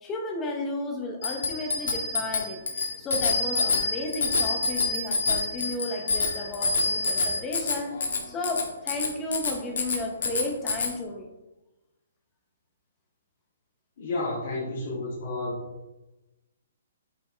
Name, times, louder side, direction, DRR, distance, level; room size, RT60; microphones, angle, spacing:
voice 1, 0.0-2.6 3.0-11.3, left 2 dB, 15° left, 2 dB, 0.8 m, -33 dB
Bicycle bell, 1.2-10.9, left 4 dB, 60° left, 1.3 m, -27 dB
voice 2, 14.0-15.6, left 2 dB, 45° left, -7 dB, 1.9 m, -31 dB
8.2 x 4.3 x 3.4 m, 1.0 s
hypercardioid pair, 170°, 0 cm